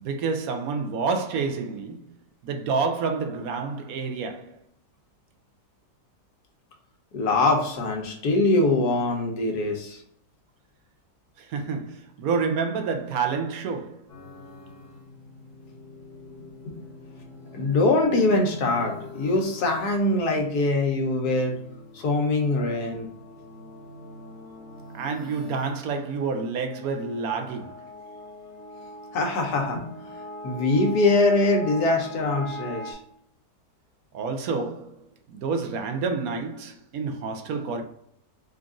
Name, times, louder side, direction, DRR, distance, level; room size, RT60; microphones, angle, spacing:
voice 1, 0.0-2.1 2.4-4.6 11.4-14.0 24.9-27.8 34.1-34.9 35.3-37.8, right 4 dB, 75° right, 1.0 m, -28 dB
voice 2, 7.1-10.0 16.6-16.7 17.5-21.5 21.9-23.1 29.1-29.8 30.4-33.0, left 2 dB, 85° left, 1.4 m, -23 dB
sound 1, 14.1-32.9, left 1 dB, 55° left, 1.2 m, -43 dB
3.9 x 2.4 x 3.7 m
omnidirectional pair, 1.6 m